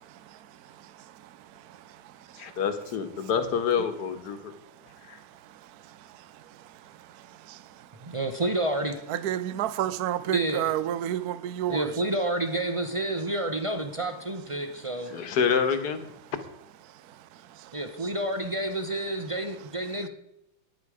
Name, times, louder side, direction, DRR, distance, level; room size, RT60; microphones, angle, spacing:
voice 1, 2.4-4.5 5.1-5.2 15.1-16.0, left 7 dB, 55° left, 1.8 m, -27 dB
voice 2, 8.1-8.9 10.3-10.7 11.7-15.1 17.7-20.1, right 1 dB, 55° right, 0.3 m, -29 dB
voice 3, 9.1-11.9 17.5-17.7, right 11 dB, 70° right, 0.9 m, -29 dB
14.0 x 10.5 x 4.9 m
omnidirectional pair, 2.3 m